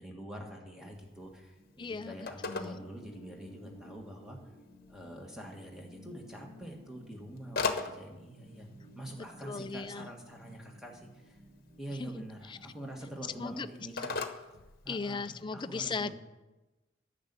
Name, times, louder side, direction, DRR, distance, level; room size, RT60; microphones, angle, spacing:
voice 1, 0.0-4.4 4.9-8.7 8.9-11.4 11.8-14.2 14.8-16.1, right 1 dB, ahead, 0 dB, 1.6 m, -45 dB
Telephone, 0.9-15.4, left 4 dB, 50° left, 1.1 m, -43 dB
sound 1, 1.6-13.6, left 1 dB, 50° right, 4.8 m, -55 dB
voice 2, 1.8-2.2 2.4-2.8 9.4-10.1 12.0-12.1 12.5-12.6 13.4-13.7 14.9-16.1, left 4 dB, 25° left, 12 dB, 0.4 m, -37 dB
10.0 x 6.7 x 8.9 m, 1.1 s
head